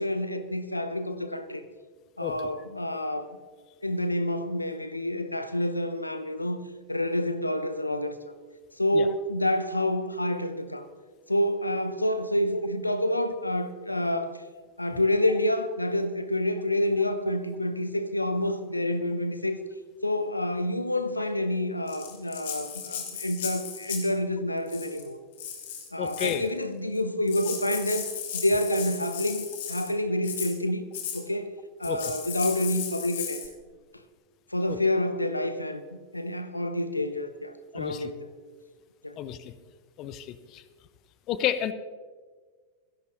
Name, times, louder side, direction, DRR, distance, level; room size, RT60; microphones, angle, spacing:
voice 1, 0.0-1.6 2.2-3.3 3.8-8.3 8.8-10.9 11.3-14.4 14.8-19.6 20.0-25.2 25.9-30.8 31.1-31.5 31.8-33.4 34.5-38.3 39.0-39.2, left 1 dB, 85° left, 11 dB, 0.8 m, -28 dB
Rattle (instrument), 21.9-24.2 24.7-25.0 25.4-26.4 27.0-27.1 27.3-29.9 30.2-30.5 30.9-31.2 31.8-33.5, left 8 dB, 55° left, 2.3 m, -36 dB
voice 2, 26.0-26.5 31.9-32.0 37.7-38.1 39.2-39.5 40.0-40.6 41.3-41.7, left 11 dB, 40° left, 14 dB, 0.7 m, -31 dB
26.5 x 11.0 x 3.1 m, 1.5 s
figure-of-eight pair, 90°, 0 cm